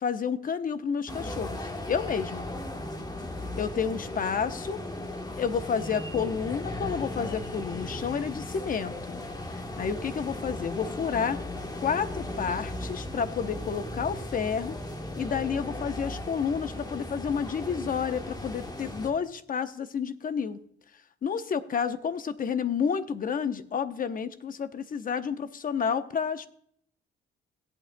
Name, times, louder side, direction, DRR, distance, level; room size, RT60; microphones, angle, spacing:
voice 1, 0.0-1.6 1.9-2.5 3.6-4.8 5.4-9.2 9.8-11.4 11.8-14.8 15.2-20.6 21.2-26.5, left 6 dB, 45° left, 11 dB, 0.8 m, -30 dB
sound 1, 1.1-19.1, left 1 dB, 20° left, 1.3 m, -37 dB
17.5 x 8.7 x 2.2 m, 0.68 s
cardioid pair, 90°, 20 cm